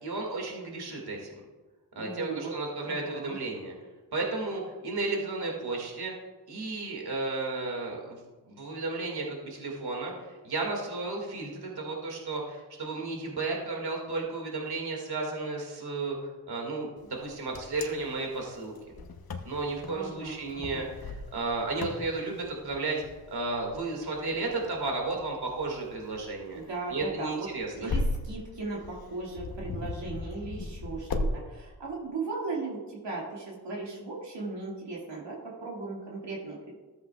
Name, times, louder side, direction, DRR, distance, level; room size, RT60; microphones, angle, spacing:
voice 1, 0.0-1.3 2.0-3.7 4.1-6.1 6.5-16.9 17.2-18.7 19.4-23.0 23.3-26.6 26.9-27.9, right 3 dB, 65° right, 0 dB, 2.2 m, -33 dB
voice 2, 2.0-2.5 2.8-3.4 19.9-20.8 26.5-36.7, right 3 dB, 80° right, -4 dB, 2.2 m, -37 dB
Wind, 17.1-31.3, left 2 dB, 60° left, 1.0 m, -38 dB
13.5 x 8.0 x 2.4 m, 1.3 s
cardioid pair, 60°, 42 cm